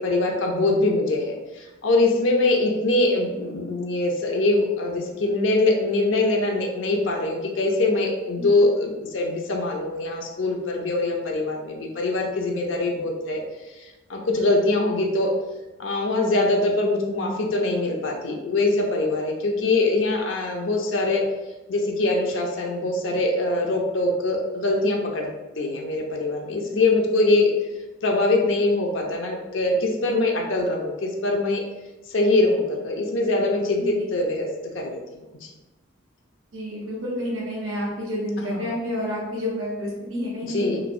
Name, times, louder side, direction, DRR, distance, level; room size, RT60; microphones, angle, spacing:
voice 1, 0.0-13.4 13.7-15.3 15.8-21.2 21.7-25.3 25.6-27.5 28.0-31.6 32.1-34.5 34.7-35.0 35.4-35.5 38.5-38.8 40.5-40.8, left 2 dB, 75° left, 1 dB, 0.5 m, -23 dB
voice 2, 36.5-40.7, equal, 80° right, -5 dB, 0.8 m, -29 dB
3.0 x 3.0 x 2.6 m, 1.1 s
head